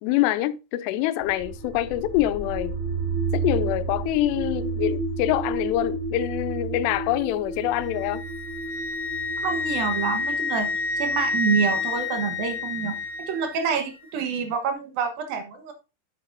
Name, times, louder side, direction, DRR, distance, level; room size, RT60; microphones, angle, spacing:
voice 1, 0.0-2.8 3.3-8.2, left 14 dB, 90° left, 2.7 m, -25 dB
sound 1, 1.2-13.0, right 3 dB, 45° right, 3.2 m, -32 dB
Wind instrument woodwind instrument, 7.7-13.7, left 4 dB, 65° left, 2.6 m, -29 dB
voice 2, 9.4-10.7 11.0-13.0 13.3-15.7, right 6 dB, 65° right, 2.8 m, -27 dB
9.0 x 8.4 x 2.6 m
omnidirectional pair, 4.8 m